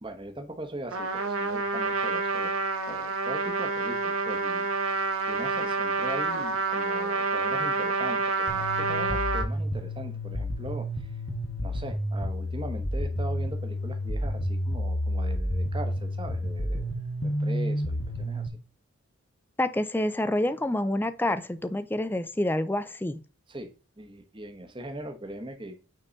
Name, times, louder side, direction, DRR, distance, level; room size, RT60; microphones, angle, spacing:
voice 1, 0.0-2.5 2.9-4.7 5.3-11.1 11.6-16.9 17.2-18.5 23.5-23.7 24.0-25.8, right 1 dB, 25° right, 1.1 m, -40 dB
Trumpet, 0.9-9.5, right 4 dB, 80° right, 1.4 m, -28 dB
sound 1, 8.5-18.5, equal, 70° left, 1.4 m, -30 dB
voice 2, 19.6-23.2, left 1 dB, 10° left, 0.4 m, -27 dB
9.1 x 3.8 x 4.0 m
head